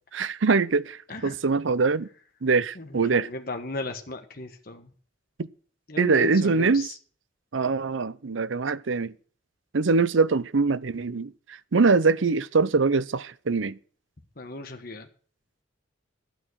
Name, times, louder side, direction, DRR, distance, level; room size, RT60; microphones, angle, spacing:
voice 1, 0.1-2.1 2.4-3.3 6.0-6.9 7.5-9.1 9.7-13.8, right 4 dB, 80° right, 0.7 m, -23 dB
voice 2, 3.1-4.9 5.9-6.7 14.4-15.1, left 2 dB, 50° left, 1.5 m, -36 dB
12.0 x 9.2 x 6.3 m
head